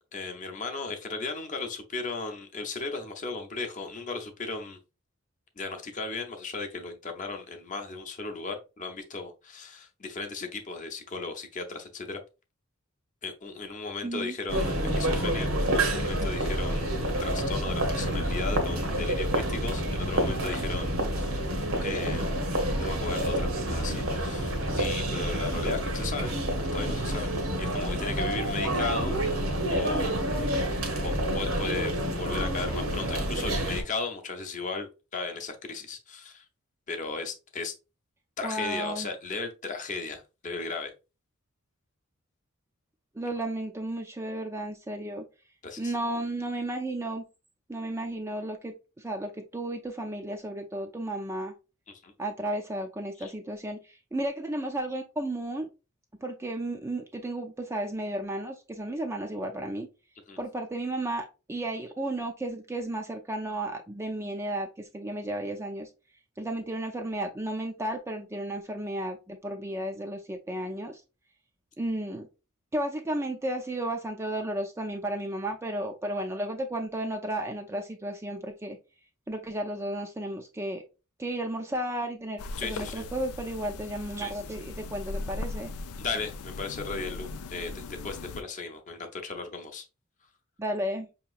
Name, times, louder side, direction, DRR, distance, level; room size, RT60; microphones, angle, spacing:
voice 1, 0.1-4.8 5.6-12.2 13.2-21.4 21.8-22.5 22.8-26.3 26.6-29.2 29.7-30.1 30.4-36.4 36.9-37.7 38.4-40.9 45.6-45.9 51.9-52.1 53.2-53.3 60.3-60.4 82.6-83.0 86.0-89.8, left 4 dB, 35° left, 5 dB, 0.6 m, -36 dB
voice 2, 14.0-14.4 38.4-39.1 43.1-45.2 45.8-47.2 47.7-51.5 52.2-55.7 56.2-59.9 60.4-65.9 66.4-71.0 71.8-72.3 72.7-78.8 79.3-80.8 81.2-85.7 90.6-91.1, right 1 dB, 10° right, 3 dB, 0.3 m, -33 dB
sound 1, 14.5-33.8, right 1 dB, 65° right, 0.9 m, -28 dB
sound 2, 82.4-88.4, left 3 dB, 90° left, 0.4 m, -39 dB
5.4 x 2.9 x 2.4 m, 0.29 s
head